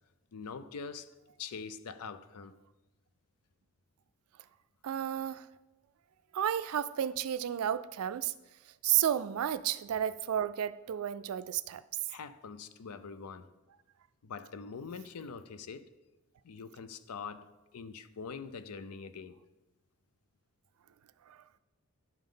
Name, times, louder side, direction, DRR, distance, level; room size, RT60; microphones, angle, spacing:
voice 1, 0.3-1.1 1.4-2.5 8.9-9.0 12.1-13.5 14.2-15.9 16.4-19.4, left 5 dB, 90° left, 0.5 m, -44 dB
voice 2, 4.8-5.5 6.3-8.3 8.8-11.8 21.3-21.4, right 10 dB, 80° right, 0.3 m, -32 dB
11.0 x 5.3 x 3.8 m
head